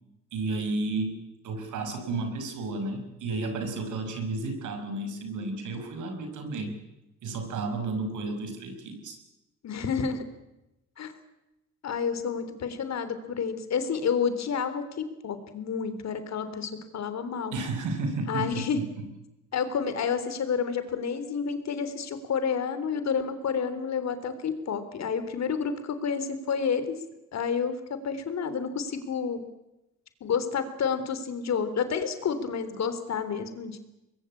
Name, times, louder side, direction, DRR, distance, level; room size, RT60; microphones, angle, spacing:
voice 1, 0.3-6.8 7.2-9.2 17.5-19.1, right 3 dB, 80° right, 6 dB, 5.9 m, -32 dB
voice 2, 9.6-10.2 11.0-11.1 11.8-17.5 18.3-18.8 19.5-27.0 27.3-27.7 28.0-29.4 30.2-33.8, left 6 dB, 60° left, 11 dB, 3.5 m, -29 dB
24.5 x 21.0 x 8.6 m, 0.95 s
cardioid pair, 90°, 30 cm